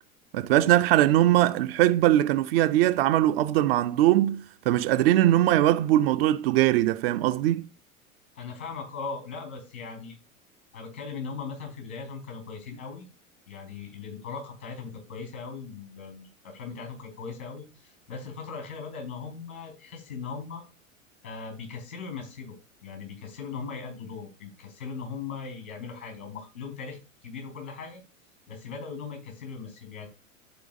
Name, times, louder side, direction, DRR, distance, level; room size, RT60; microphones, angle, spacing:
voice 1, 0.3-7.7, right 14 dB, 45° right, 0.5 m, -21 dB
voice 2, 8.4-10.2 10.7-13.1 13.5-20.6 21.2-28.0 28.5-30.1, left 5 dB, 80° left, 4.7 m, -39 dB
12.0 x 4.5 x 2.6 m
figure-of-eight pair, 85°, 43 cm